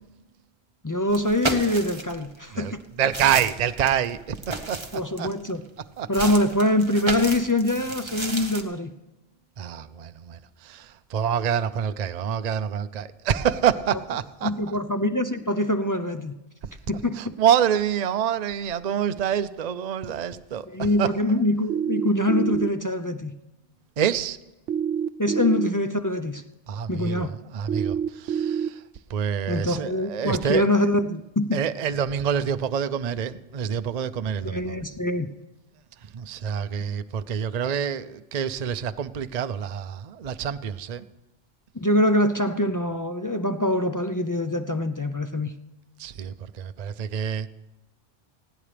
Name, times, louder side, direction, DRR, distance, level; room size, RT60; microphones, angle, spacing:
voice 1, 0.8-2.8 4.9-5.6 6.1-8.9 14.4-16.4 16.9-17.3 20.7-23.3 25.2-26.4 26.9-27.3 29.5-31.6 34.4-35.3 41.7-45.5, left 1 dB, 25° left, 0.5 m, -24 dB
sound 1, 1.1-2.3 2.8-5.5 6.1-8.6, right 2 dB, 25° right, 1.2 m, -33 dB
voice 2, 2.5-5.3 6.0-6.1 9.6-14.8 17.1-21.1 24.0-24.4 26.7-28.8 29.1-30.7 31.5-34.8 36.0-41.0 46.0-47.5, right 8 dB, 50° right, 0.6 m, -27 dB
sound 2, 21.7-22.7 24.7-25.7 27.7-28.7, right 8 dB, 85° right, 1.0 m, -26 dB
19.5 x 16.0 x 3.4 m
omnidirectional pair, 1.2 m